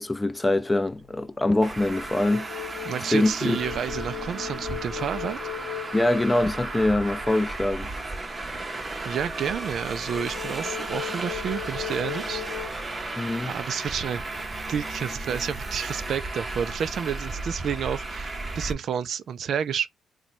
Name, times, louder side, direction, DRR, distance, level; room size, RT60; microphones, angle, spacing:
voice 1, 0.0-2.5 3.1-3.6 5.9-7.9 13.2-13.5, left 2 dB, 15° left, 0.5 m, -24 dB
sound 1, 0.9-1.2 1.7-7.6 10.1-12.7, left 20 dB, 80° left, 0.5 m, -38 dB
Traffic noise roadway noise, 1.6-18.7, right 2 dB, 25° right, 0.7 m, -34 dB
voice 2, 2.9-5.4 9.1-12.4 13.4-14.2 14.7-19.9, right 8 dB, 60° right, 0.3 m, -30 dB
3.0 x 2.2 x 4.1 m
cardioid pair, 90°, 0 cm